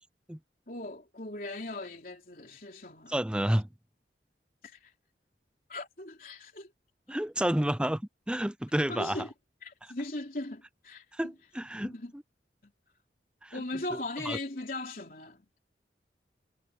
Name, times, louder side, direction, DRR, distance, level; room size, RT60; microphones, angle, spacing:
voice 1, 0.7-3.1 4.6-4.9 5.7-6.7 8.9-9.3 9.6-11.1 11.8-12.1 12.6-12.7 13.5-15.6, left 2 dB, 50° left, 3.6 m, -39 dB
voice 2, 3.1-3.7 7.1-8.0 8.3-9.3 11.1-12.2 13.4-13.5 14.3-14.4, right 1 dB, 5° right, 0.5 m, -30 dB
head